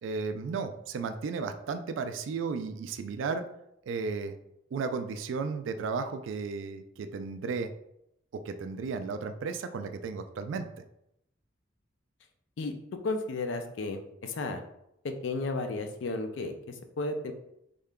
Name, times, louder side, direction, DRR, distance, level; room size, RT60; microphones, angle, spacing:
voice 1, 0.0-3.4 3.9-4.3 4.7-7.7 8.3-10.7, right 4 dB, 80° right, 8 dB, 0.3 m, -34 dB
voice 2, 13.0-14.6 15.2-17.3, left 3 dB, 75° left, 6 dB, 0.4 m, -33 dB
3.7 x 3.5 x 2.2 m, 0.80 s
head